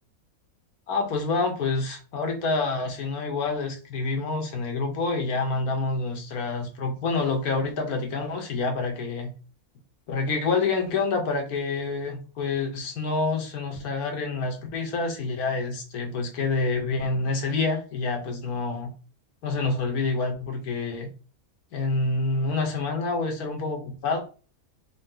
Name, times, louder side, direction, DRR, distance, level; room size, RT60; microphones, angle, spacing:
voice 1, 0.9-9.3 10.1-18.9 19.4-21.1 21.7-24.2, left 3 dB, 75° left, 3 dB, 1.4 m, -27 dB
3.5 x 2.8 x 3.7 m, 0.36 s
omnidirectional pair, 1.6 m